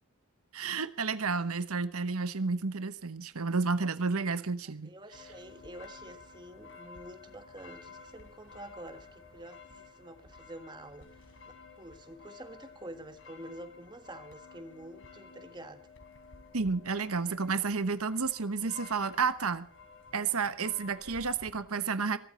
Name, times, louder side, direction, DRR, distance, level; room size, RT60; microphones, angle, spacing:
voice 1, 0.5-4.9 16.5-19.7 20.1-22.2, right 4 dB, 80° right, 12 dB, 1.1 m, -31 dB
voice 2, 4.8-11.1 11.5-15.9, right 1 dB, 20° right, 9 dB, 1.6 m, -48 dB
sound 1, 5.1-21.6, left 4 dB, 60° left, 3.9 m, -53 dB
23.0 x 13.5 x 4.3 m, 0.43 s
head